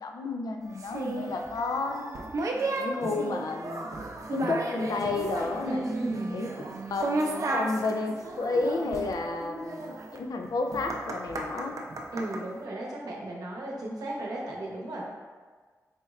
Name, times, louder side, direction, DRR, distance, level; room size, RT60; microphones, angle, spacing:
voice 1, 0.0-2.0 2.8-3.9 4.3-5.9 6.3-6.5 6.9-11.7, left 3 dB, 85° left, 3 dB, 0.4 m, -31 dB
sound 1, 0.8-12.4, right 2 dB, 60° right, 0.4 m, -34 dB
voice 2, 5.6-6.4 12.1-15.1, right 1 dB, 90° right, -3 dB, 0.7 m, -35 dB
4.3 x 3.1 x 2.4 m, 1.5 s
wide cardioid pair, 120°, 6 cm